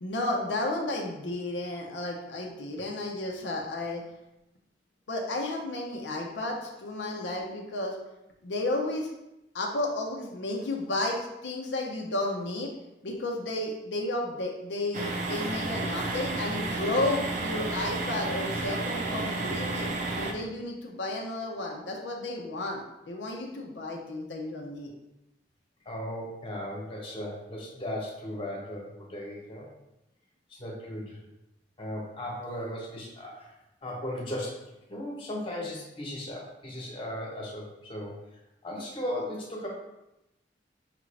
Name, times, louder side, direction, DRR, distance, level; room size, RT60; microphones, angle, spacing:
voice 1, 0.0-4.0 5.1-7.9 8.4-9.1 9.5-12.7 13.0-19.9 20.1-24.9, left 2 dB, 85° left, 0 dB, 0.6 m, -32 dB
sound 1, 14.9-20.3, right 2 dB, 45° right, 0.5 m, -31 dB
voice 2, 25.8-29.7 30.5-31.2 31.8-33.5 33.8-34.6 34.9-38.2 38.6-39.7, left 1 dB, 30° left, -3 dB, 1.1 m, -36 dB
5.8 x 2.5 x 3.2 m, 0.90 s
head